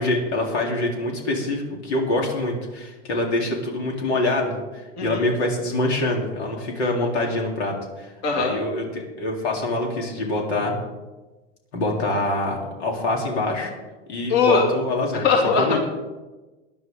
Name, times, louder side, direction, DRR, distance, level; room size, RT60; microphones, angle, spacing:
voice 1, 0.0-10.7 11.7-13.7 14.1-15.3 15.6-15.8, left 2 dB, 85° left, 0 dB, 3.8 m, -25 dB
voice 2, 8.2-8.5 14.3-14.6 15.1-15.8, left 4 dB, 55° left, 0 dB, 2.7 m, -20 dB
18.5 x 11.0 x 3.9 m, 1.2 s
supercardioid pair, 120°, 32 cm